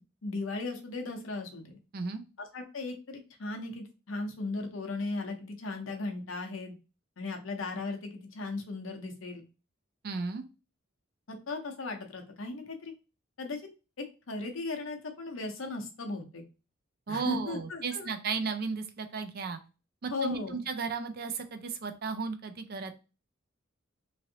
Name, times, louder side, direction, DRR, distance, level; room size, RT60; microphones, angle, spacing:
voice 1, 0.0-1.8 2.4-6.8 7.2-9.4 11.3-12.9 13.4-13.6 14.0-16.4 17.1-18.1 20.1-20.6, left 3 dB, 70° left, 3 dB, 0.8 m, -37 dB
voice 2, 10.0-10.5 17.1-19.6 20.0-22.9, right 5 dB, 50° right, 8 dB, 0.4 m, -34 dB
3.1 x 2.6 x 2.7 m, 0.31 s
head